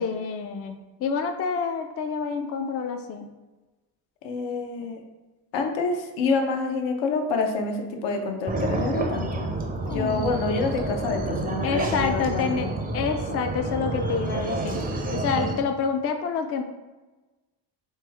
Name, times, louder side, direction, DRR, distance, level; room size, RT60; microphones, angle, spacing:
voice 1, 0.0-3.3 9.8-10.2 11.6-12.7 12.9-14.9 15.1-16.6, left 6 dB, 35° left, 6 dB, 0.4 m, -28 dB
voice 2, 4.2-5.0 5.5-9.4 9.9-12.7, left 4 dB, 75° left, 4 dB, 0.7 m, -27 dB
sound 1, 8.5-15.5, right 2 dB, 20° right, 0.5 m, -29 dB
3.1 x 3.0 x 3.4 m, 1.2 s
supercardioid pair, 80°, 44 cm